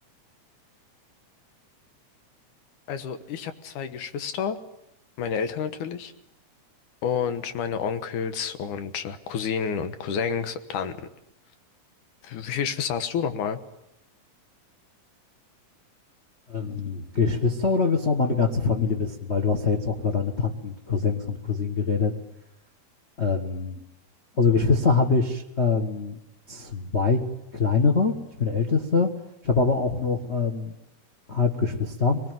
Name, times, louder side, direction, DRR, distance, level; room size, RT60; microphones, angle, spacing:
voice 1, 2.9-4.6 5.2-6.1 7.0-11.0 12.2-13.6, left 7 dB, 85° left, 9 dB, 2.9 m, -29 dB
voice 2, 16.5-22.1 23.2-23.8 24.4-26.2 26.5-27.2 27.5-29.1 29.4-30.7 31.3-32.2, left 4 dB, 50° left, 4 dB, 0.8 m, -24 dB
24.5 x 19.5 x 9.3 m, 0.86 s
omnidirectional pair, 3.5 m